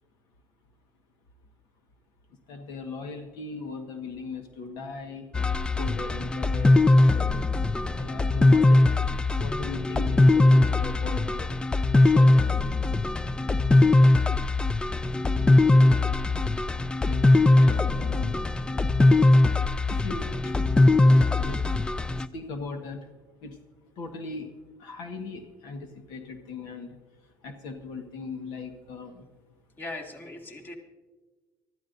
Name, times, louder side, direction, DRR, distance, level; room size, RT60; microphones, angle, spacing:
voice 1, 2.5-5.3 5.7-9.0 9.4-11.5 12.0-12.6 16.2-16.5 16.8-18.4 19.9-20.6 20.9-21.0 21.3-21.6 22.3-23.1 23.4-23.6 24.0-24.5 24.8-29.3, left 4 dB, 80° left, 5 dB, 1.5 m, -39 dB
sound 1, 5.3-22.3, left 2 dB, 15° left, 0.4 m, -21 dB
voice 2, 29.8-30.8, left 2 dB, 30° left, 2 dB, 2.1 m, -39 dB
25.0 x 13.5 x 2.7 m, 1.3 s
cardioid pair, 120°, 7 cm